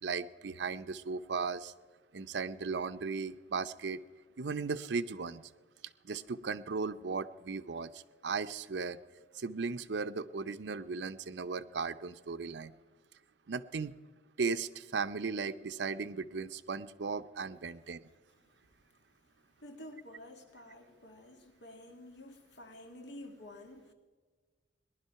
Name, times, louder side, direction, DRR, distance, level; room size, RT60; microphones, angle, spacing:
voice 1, 0.0-1.7 2.1-4.0 4.4-5.4 6.0-9.0 9.3-12.7 13.5-14.0 14.4-18.1, right 4 dB, 80° right, 0.6 m, -36 dB
voice 2, 18.4-18.9 19.2-23.9, left 1 dB, 85° left, 1.9 m, -51 dB
18.5 x 11.5 x 5.7 m
head